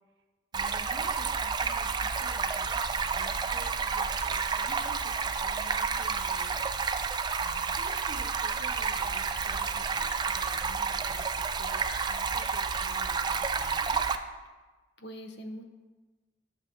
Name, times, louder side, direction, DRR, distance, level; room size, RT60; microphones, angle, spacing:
Stream, 0.5-14.2, right 5 dB, 25° right, 0.3 m, -30 dB
voice 1, 0.5-6.7 7.7-14.1, right 1 dB, 85° right, 6 dB, 0.9 m, -50 dB
voice 2, 7.4-7.7 15.0-15.7, equal, 70° left, 6 dB, 0.8 m, -43 dB
11.5 x 6.8 x 2.9 m, 1.3 s
head